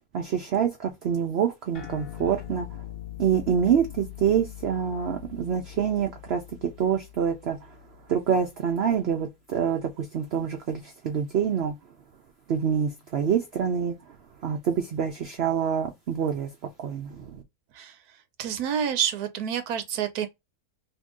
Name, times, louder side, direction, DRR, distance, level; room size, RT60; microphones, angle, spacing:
voice 1, 0.1-2.7 3.2-7.7 8.1-11.7 12.5-13.9 14.4-16.5 16.8-17.4, right 8 dB, 65° right, 0.6 m, -26 dB
sound 1, 1.7-8.6, left 13 dB, 55° left, 0.6 m, -42 dB
voice 2, 18.4-20.3, right 9 dB, 80° right, 1.1 m, -28 dB
2.9 x 2.7 x 3.6 m
omnidirectional pair, 1.6 m